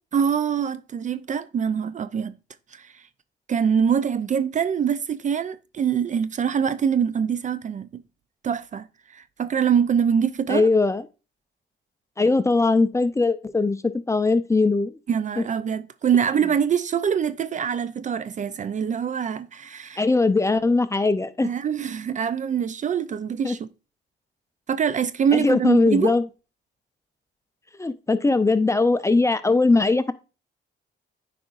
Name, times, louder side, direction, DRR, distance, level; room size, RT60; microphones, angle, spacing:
voice 1, 0.1-2.3 2.7-3.0 3.5-8.0 8.4-10.7 15.1-20.0 21.4-23.7 24.7-26.2, right 7 dB, 40° right, 0.4 m, -24 dB
voice 2, 10.5-11.0 12.2-14.9 20.0-21.5 23.4-23.6 25.3-26.2 27.8-30.1, left 3 dB, 15° left, 0.5 m, -20 dB
9.3 x 4.9 x 2.5 m
cardioid pair, 90°, 20 cm